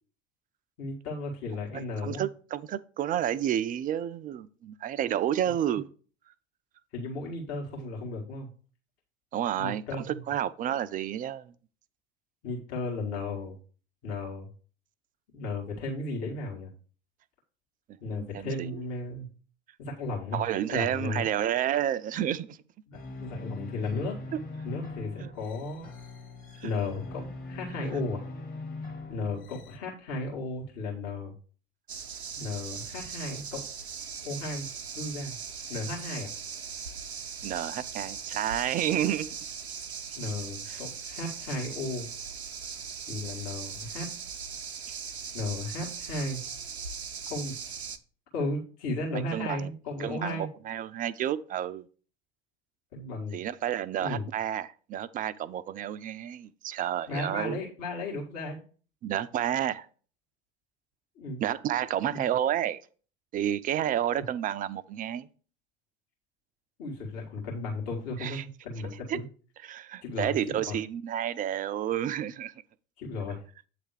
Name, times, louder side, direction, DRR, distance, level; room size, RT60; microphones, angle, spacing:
voice 1, 0.8-2.2 6.9-8.5 9.6-10.2 12.4-13.6 14.0-14.5 15.3-16.7 18.0-19.3 19.8-20.4 20.7-21.2 22.9-24.2 24.6-25.9 26.6-28.2 29.1-31.3 32.4-33.6 34.2-34.7 35.0-35.4 35.7-36.3 40.2-42.1 43.1-44.1 45.3-46.4 47.2-47.5 48.3-50.5 52.9-53.4 54.0-54.2 57.1-58.6 61.2-61.4 62.1-62.2 66.8-69.2 70.0-70.8 73.0-73.4, left 2 dB, 50° left, 1.9 m, -35 dB
voice 2, 1.7-5.9 9.3-11.5 18.1-18.8 20.3-22.6 25.2-25.3 26.6-26.7 37.4-39.3 40.7-40.8 44.9-45.0 49.3-49.7 50.0-51.8 53.3-57.6 59.0-59.9 61.4-62.8 63.3-65.3 68.2-68.4 69.1-69.2 69.6-72.5, right 10 dB, 25° right, 0.4 m, -30 dB
sound 1, 22.9-29.8, left 2 dB, 30° left, 1.6 m, -41 dB
sound 2, 31.9-48.0, right 6 dB, 90° right, 0.5 m, -39 dB
8.3 x 3.3 x 4.8 m
figure-of-eight pair, 70°, 32 cm